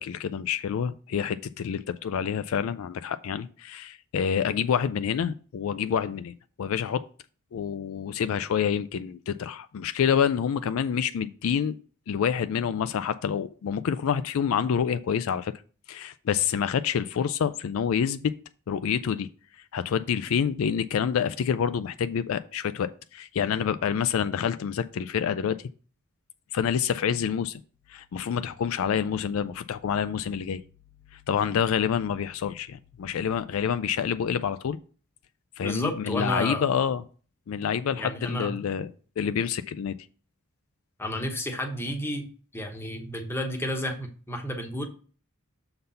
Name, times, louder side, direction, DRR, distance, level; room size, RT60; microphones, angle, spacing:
voice 1, 0.0-7.0 7.5-11.8 12.1-15.5 15.9-18.3 18.7-19.3 19.7-25.6 26.5-27.6 27.9-30.6 31.1-34.8 35.6-37.0 37.5-38.9 39.2-40.0, left 7 dB, 70° left, 0.3 m, -27 dB
voice 2, 35.6-36.7 38.0-38.5 41.0-44.9, left 1 dB, 10° left, 1.0 m, -31 dB
6.7 x 3.9 x 5.5 m
head